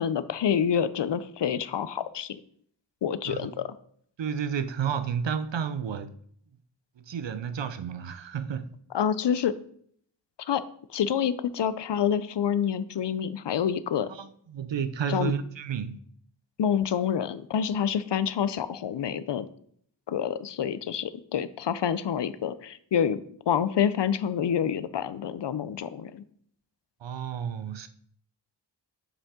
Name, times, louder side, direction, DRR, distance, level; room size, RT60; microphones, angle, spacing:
voice 1, 0.0-2.4 3.0-3.7 8.9-9.5 10.5-10.6 10.9-14.1 15.1-15.3 16.6-19.5 20.1-23.2 23.5-26.2, left 8 dB, 70° left, 0.6 m, -27 dB
voice 2, 4.2-6.1 7.0-8.7 14.1-16.0 27.0-27.9, right 7 dB, 75° right, 0.7 m, -31 dB
7.3 x 5.2 x 3.7 m
wide cardioid pair, 65°, 44 cm